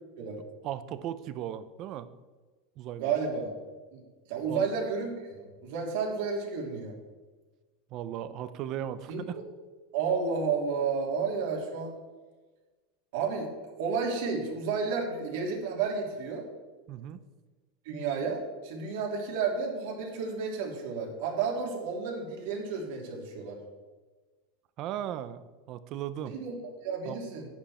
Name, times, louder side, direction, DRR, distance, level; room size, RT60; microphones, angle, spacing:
voice 1, 0.6-2.1 2.8-3.1 4.5-4.7 7.9-9.4 16.9-17.2 24.8-26.3 27.0-27.2, right 11 dB, 35° right, 14 dB, 0.6 m, -37 dB
voice 2, 3.0-3.6 3.9-4.0 4.3-7.0 9.1-9.4 9.9-11.9 13.1-13.5 13.7-16.4 17.8-23.6 26.3-27.5, right 5 dB, 60° right, 0 dB, 3.1 m, -31 dB
11.5 x 9.4 x 4.3 m, 1.3 s
supercardioid pair, 165°, 0 cm